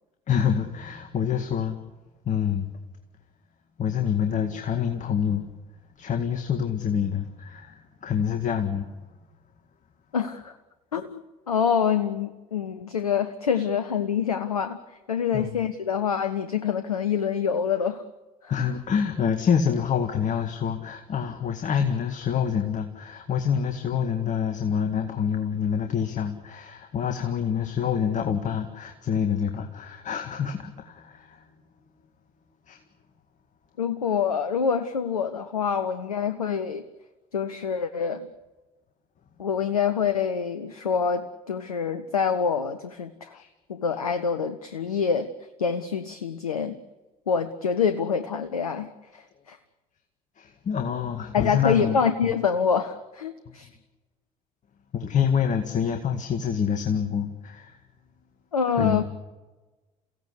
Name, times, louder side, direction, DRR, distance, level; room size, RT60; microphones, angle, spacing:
voice 1, 0.3-1.8 2.3-2.7 3.8-5.5 6.0-8.9 15.3-15.6 18.5-31.4 32.7-32.8 43.3-43.5 50.4-52.0 52.2-52.3 53.5-53.6 54.9-57.8 58.8-59.0, left 7 dB, 45° left, 6 dB, 2.0 m, -26 dB
voice 2, 10.1-10.6 10.9-18.0 18.4-18.5 33.8-36.9 37.3-38.3 39.4-43.4 43.7-45.3 45.6-46.8 47.3-49.6 51.3-53.7 58.5-59.0, left 6 dB, 90° left, 10 dB, 0.8 m, -26 dB
29.0 x 16.5 x 8.3 m, 1.2 s
figure-of-eight pair, 55°, 18 cm